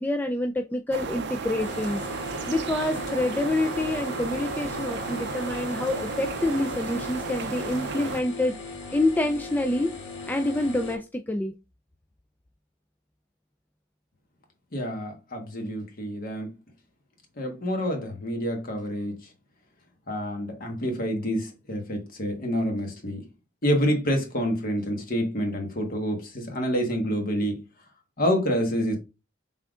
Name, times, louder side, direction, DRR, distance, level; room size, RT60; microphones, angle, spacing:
voice 1, 0.0-2.0 2.5-8.6 8.9-9.9 10.3-11.5, left 1 dB, 10° left, 0.3 m, -27 dB
sound 1, 0.9-8.2, right 4 dB, 60° right, 0.5 m, -34 dB
sound 2, 1.6-11.0, left 3 dB, 65° left, 1.4 m, -39 dB
voice 2, 14.7-16.5 17.4-19.2 20.1-23.2 23.6-27.6 28.2-29.0, equal, 50° left, 1.3 m, -27 dB
5.6 x 3.7 x 2.4 m
head